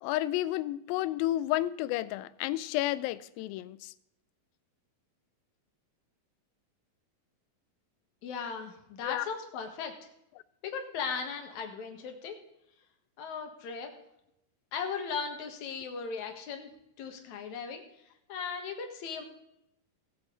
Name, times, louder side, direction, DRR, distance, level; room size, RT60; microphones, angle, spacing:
voice 1, 0.0-3.9 9.0-9.2, left 15 dB, 85° left, 2.3 m, -31 dB
voice 2, 8.2-9.9 10.6-12.3 13.2-13.9 14.7-16.7 17.0-17.8 18.3-19.3, left 6 dB, 60° left, 2.6 m, -37 dB
18.5 x 8.2 x 3.9 m
omnidirectional pair, 4.2 m